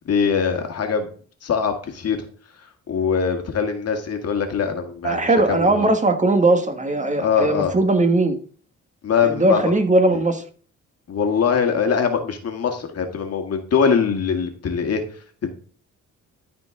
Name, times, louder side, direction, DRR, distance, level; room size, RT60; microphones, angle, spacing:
voice 1, 0.1-1.1 1.4-2.2 2.9-5.9 7.2-7.7 9.0-9.7 10.1-10.2 11.1-15.0 15.4-15.5, left 6 dB, 55° left, 5 dB, 1.8 m, -22 dB
voice 2, 5.0-8.4 9.2-10.4, right 2 dB, 25° right, 7 dB, 1.5 m, -19 dB
13.0 x 4.4 x 3.7 m, 0.43 s
cardioid pair, 90°, 30 cm